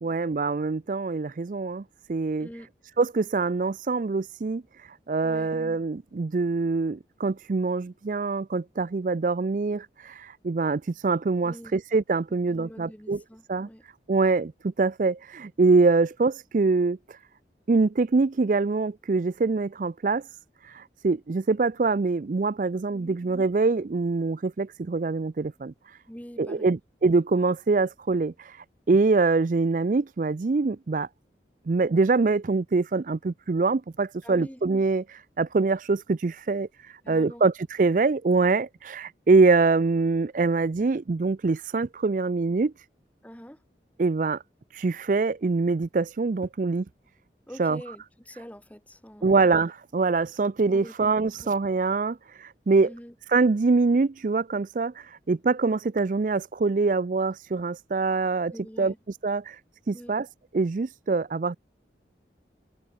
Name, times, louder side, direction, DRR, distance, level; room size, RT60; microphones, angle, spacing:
voice 1, 0.0-1.8 2.1-2.5 3.0-13.2 13.5-13.7 14.1-17.2 17.7-20.2 20.6-26.0 26.4-31.1 31.7-42.7 44.0-44.4 44.7-46.8 47.6-47.8 49.2-52.9 53.3-59.6 59.9-60.3 60.5-61.6, right 3 dB, 45° right, 0.4 m, -24 dB
voice 2, 12.3-13.8 22.9-23.2 26.1-26.8 34.2-34.6 37.0-37.4 43.2-43.6 47.5-49.4 50.7-50.9 51.4-51.5 52.8-53.1 58.5-59.0 59.9-60.1, equal, 10° left, 2.6 m, -45 dB
head